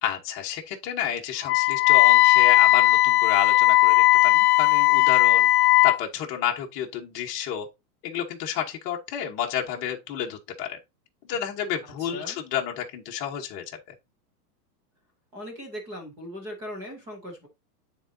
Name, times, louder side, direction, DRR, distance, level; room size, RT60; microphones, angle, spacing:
voice 1, 0.0-7.7 8.0-10.8 11.3-13.6, left 9 dB, 25° left, 1.2 m, -30 dB
Wind instrument woodwind instrument, 1.4-6.0, left 17 dB, 65° left, 0.5 m, -17 dB
voice 2, 12.0-12.4 15.3-17.5, equal, 5° right, 0.4 m, -39 dB
9.9 x 3.9 x 2.7 m
supercardioid pair, 165°, 48 cm